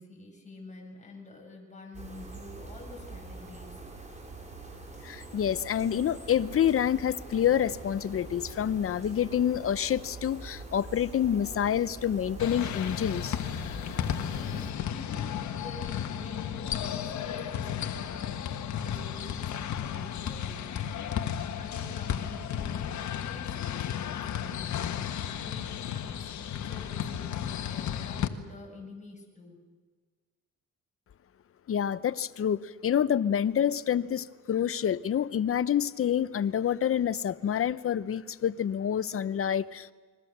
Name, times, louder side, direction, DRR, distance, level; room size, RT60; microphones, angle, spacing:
voice 1, 0.0-3.8 14.3-29.6, left 2 dB, 25° left, 1 dB, 7.7 m, -48 dB
sound 1, 1.9-14.7, right 3 dB, 25° right, 5.8 m, -44 dB
voice 2, 5.0-13.4 31.7-39.9, left 9 dB, 50° left, 16 dB, 0.8 m, -27 dB
sound 2, 12.4-28.3, left 9 dB, 70° left, 1.5 m, -33 dB
29.0 x 22.0 x 6.7 m, 1.4 s
cardioid pair, 90°, 30 cm